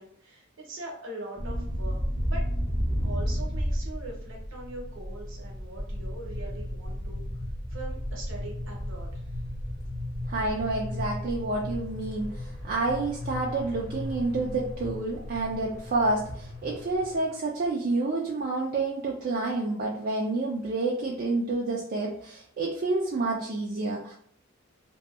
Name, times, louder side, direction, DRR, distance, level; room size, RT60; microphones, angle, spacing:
voice 1, 0.0-2.5 3.0-7.2 7.7-9.4, right 2 dB, 60° right, -1 dB, 0.8 m, -42 dB
sound 1, 1.4-17.2, equal, 25° left, 0.5 m, -33 dB
voice 2, 10.3-24.1, right 2 dB, 45° right, -3 dB, 0.3 m, -29 dB
2.6 x 2.3 x 2.3 m, 0.62 s
head